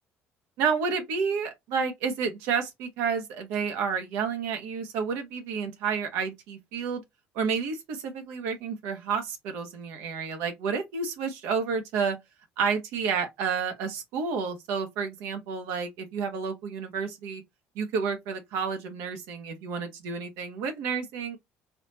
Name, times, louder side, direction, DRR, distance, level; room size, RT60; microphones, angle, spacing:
voice 1, 0.6-7.0 7.3-12.2 12.6-17.4 17.7-21.4, right 6 dB, 85° right, 1.2 m, -30 dB
4.1 x 2.8 x 2.9 m
supercardioid pair, 90°, 4 cm